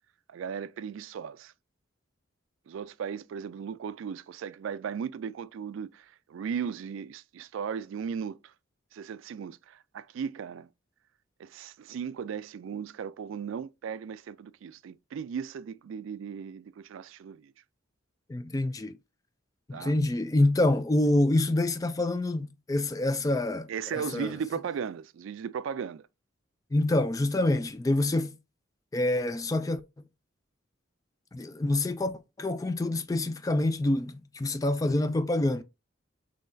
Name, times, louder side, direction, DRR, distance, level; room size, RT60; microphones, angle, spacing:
voice 1, 0.3-1.5 2.7-8.5 8.9-10.7 11.4-17.5 19.7-20.0 23.7-26.1, right 7 dB, 75° right, 0.3 m, -36 dB
voice 2, 18.3-19.0 19.7-24.3 26.7-28.4 28.9-29.8 31.3-32.1 32.4-35.6, left 1 dB, 15° left, 0.3 m, -26 dB
5.6 x 3.1 x 2.6 m
head